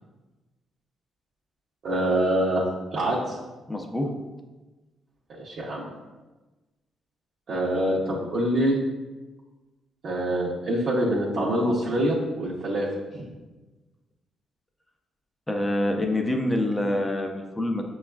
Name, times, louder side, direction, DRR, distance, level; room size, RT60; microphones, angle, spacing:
voice 1, 1.8-2.7 2.9-3.4 5.3-5.8 7.5-8.8 10.0-12.9 13.1-13.2, right 1 dB, 60° right, -7 dB, 0.7 m, -25 dB
voice 2, 3.7-4.1 15.5-17.8, left 1 dB, 10° left, 2 dB, 0.5 m, -26 dB
5.8 x 2.3 x 2.3 m, 1.2 s
cardioid pair, 85°, 0 cm